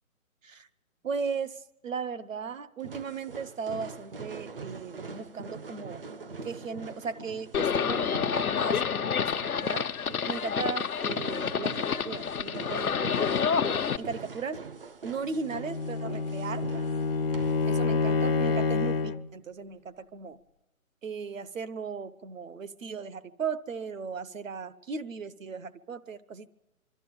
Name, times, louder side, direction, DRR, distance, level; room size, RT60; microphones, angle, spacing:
voice 1, 1.0-6.0 6.4-9.9 10.3-13.5 14.0-14.6 15.0-16.8 17.7-20.4 21.0-26.5, right 5 dB, 65° right, 14 dB, 1.1 m, -37 dB
sound 1, 2.8-17.7, right 4 dB, 40° right, 0.7 m, -44 dB
Livestock farm animals working animals, 7.5-14.0, left 7 dB, 90° left, 1.0 m, -28 dB
Bowed string instrument, 15.4-19.3, left 4 dB, 45° left, 0.6 m, -28 dB
25.5 x 12.5 x 8.8 m, 1.1 s
hypercardioid pair, 170°, 42 cm